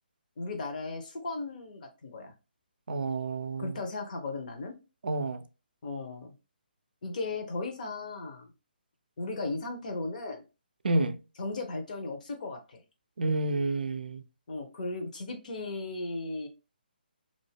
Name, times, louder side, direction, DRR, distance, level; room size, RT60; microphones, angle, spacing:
voice 1, 0.4-2.3 3.6-4.7 5.8-6.3 7.0-8.5 9.2-10.4 11.4-12.8 14.5-16.5, left 3 dB, 50° left, 0.8 m, -36 dB
voice 2, 2.9-3.8 5.0-5.4 10.8-11.2 13.2-14.3, right 2 dB, 70° right, 0.4 m, -29 dB
2.5 x 2.0 x 3.3 m
figure-of-eight pair, 145°, 5 cm